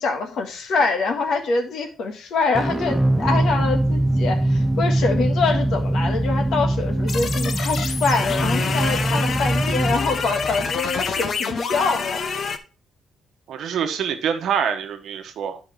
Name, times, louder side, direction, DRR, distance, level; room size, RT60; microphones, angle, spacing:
voice 1, 0.0-12.2, left 4 dB, 75° left, 1.6 m, -25 dB
sound 1, 2.5-11.2, right 1 dB, 5° right, 0.4 m, -22 dB
sound 2, 7.1-12.6, left 5 dB, 45° left, 0.7 m, -27 dB
voice 2, 13.5-15.6, right 8 dB, 75° right, 1.1 m, -25 dB
9.8 x 5.1 x 3.2 m
cardioid pair, 140°, 0 cm